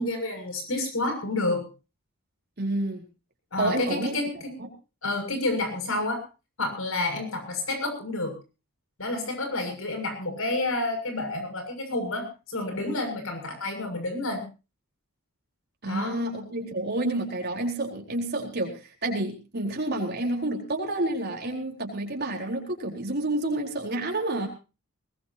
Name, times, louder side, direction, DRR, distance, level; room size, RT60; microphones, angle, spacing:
voice 1, 0.0-1.7 3.5-4.5 5.0-6.2 6.6-8.3 9.0-14.4 15.8-16.2, left 2 dB, 70° left, 6 dB, 6.7 m, -29 dB
voice 2, 2.6-3.0 3.6-4.1 4.6-4.7 15.8-24.5, right 1 dB, 50° right, 1 dB, 4.2 m, -29 dB
20.5 x 20.5 x 2.8 m, 0.32 s
head